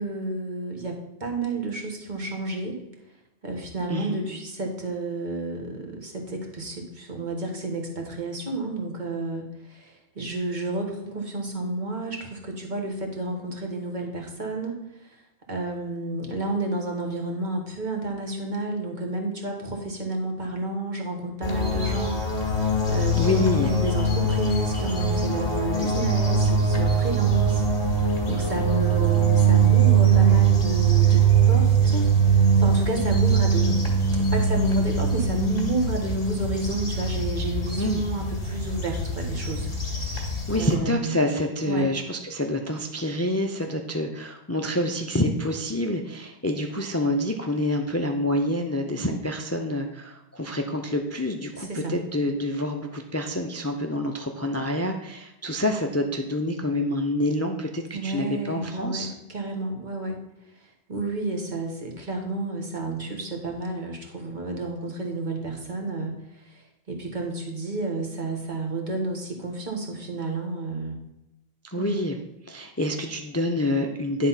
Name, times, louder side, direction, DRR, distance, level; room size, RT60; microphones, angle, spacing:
voice 1, 0.0-2.8 3.4-15.1 15.5-40.2 40.5-41.1 41.7-41.9 51.5-52.0 57.9-60.2 60.9-66.1 66.4-71.0 71.7-72.0, right 2 dB, 45° right, 2 dB, 1.5 m, -31 dB
voice 2, 3.9-4.3 23.2-23.7 37.8-38.0 40.1-59.1 71.6-72.2 72.4-74.3, left 1 dB, 20° left, 4 dB, 0.4 m, -27 dB
sound 1, 21.4-40.7, right 4 dB, 40° left, 2.2 m, -22 dB
10.5 x 3.7 x 5.6 m, 0.90 s
omnidirectional pair, 1.1 m